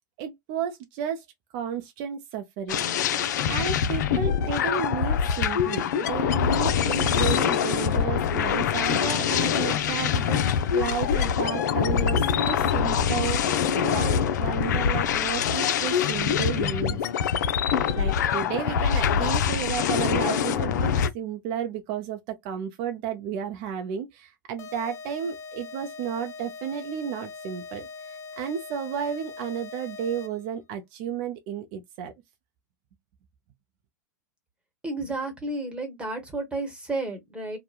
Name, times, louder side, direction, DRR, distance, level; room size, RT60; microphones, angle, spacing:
voice 1, 0.2-1.3 1.5-2.8 3.5-17.4 17.9-32.1, right 8 dB, 50° right, 0.6 m, -33 dB
sound 1, 2.7-21.1, left 8 dB, 70° left, 0.4 m, -24 dB
sound 2, 24.6-30.5, left 4 dB, 30° left, 0.6 m, -41 dB
voice 2, 34.8-37.6, right 2 dB, 10° right, 1.1 m, -32 dB
3.0 x 2.1 x 2.3 m
hypercardioid pair, 100°, 10 cm